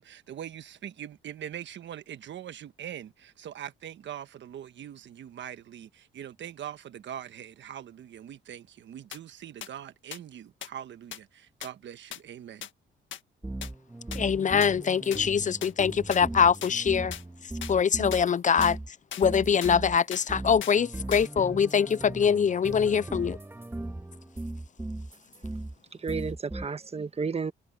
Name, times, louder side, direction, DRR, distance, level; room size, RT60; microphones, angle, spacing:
voice 1, 0.0-12.7, right 10 dB, 65° right, 1.4 m, -42 dB
sound 1, 9.1-9.2 9.6-9.7 10.1-10.2 10.6-10.7 11.1-11.2 11.6-11.7 12.1-12.2 12.6-12.7 13.1-13.2 13.6-13.7 14.1-14.2 14.6-14.7 15.1-15.2 15.6-15.7 16.1-16.2 16.6-16.7 17.1-17.2 17.6-17.7 18.1-18.2 18.6-18.7 19.1-19.2 19.6-19.8 20.1-20.3 20.6-20.8 21.1-21.3 21.6-21.7, left 10 dB, 70° left, 1.7 m, -39 dB
sound 2, 13.4-18.3 18.6-25.8 26.1-26.7, right 1 dB, 10° right, 2.4 m, -38 dB
voice 2, 14.1-17.1 17.7-18.8 19.2-23.4, left 7 dB, 40° left, 0.6 m, -23 dB
voice 3, 25.9-27.5, right 5 dB, 30° right, 1.4 m, -32 dB
cardioid pair, 80°, 20 cm